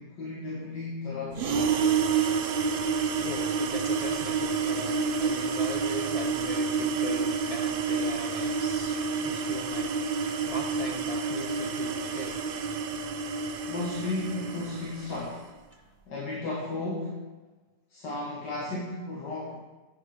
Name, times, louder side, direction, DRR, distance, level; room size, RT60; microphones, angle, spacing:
voice 1, 0.0-1.7 13.6-15.5 16.1-17.3 17.9-19.6, left 2 dB, 80° left, -5 dB, 2.4 m, -34 dB
sound 1, 1.3-15.3, right 5 dB, 80° right, 0.5 m, -29 dB
voice 2, 3.2-12.4 15.7-15.8, left 2 dB, 40° left, 3 dB, 0.5 m, -40 dB
10.0 x 8.8 x 5.1 m, 1.2 s
omnidirectional pair, 1.9 m